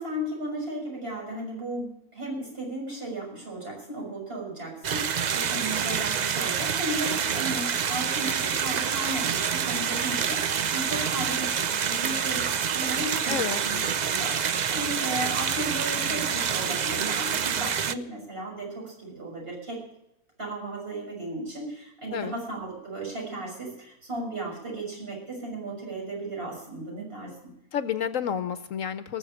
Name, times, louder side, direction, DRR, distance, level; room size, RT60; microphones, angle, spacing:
voice 1, 0.0-11.5 11.9-19.8 20.4-27.3, right 1 dB, 40° right, -2 dB, 6.6 m, -35 dB
sound 1, 4.8-17.9, right 7 dB, 65° right, 0.4 m, -27 dB
voice 2, 13.3-13.6 22.1-22.4 27.7-29.2, left 8 dB, 65° left, 13 dB, 1.0 m, -30 dB
19.0 x 7.2 x 8.8 m, 0.84 s
omnidirectional pair, 1.5 m